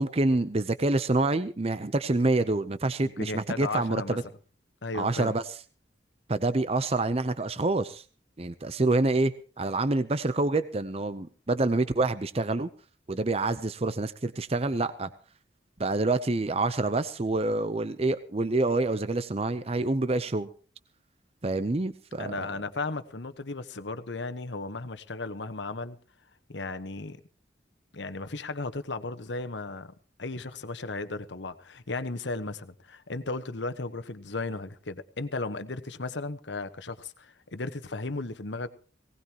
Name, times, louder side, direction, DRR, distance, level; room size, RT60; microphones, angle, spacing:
voice 1, 0.0-4.2 4.9-5.6 6.3-8.0 8.4-12.7 13.1-15.1 15.8-20.5 21.4-22.6, right 2 dB, 35° right, 0.7 m, -27 dB
voice 2, 3.0-4.2 4.8-5.3 22.2-26.0 26.5-27.2 27.9-29.9 30.2-38.7, left 3 dB, 80° left, 1.2 m, -35 dB
19.5 x 18.0 x 3.0 m
head